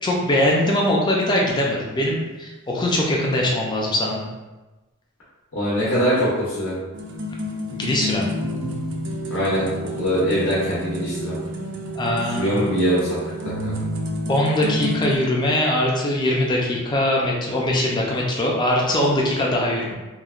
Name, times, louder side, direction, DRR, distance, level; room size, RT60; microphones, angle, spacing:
voice 1, 0.0-4.3 7.7-8.4 11.9-12.6 14.3-19.9, left 1 dB, 20° left, -2 dB, 0.4 m, -21 dB
voice 2, 5.5-6.7 9.3-9.7 10.0-11.4 12.4-13.2 13.4-13.7, equal, 65° left, -9 dB, 0.7 m, -22 dB
sound 1, 6.9-15.2, equal, 55° right, 0.3 m, -29 dB
2.8 x 2.1 x 2.3 m, 1.1 s
head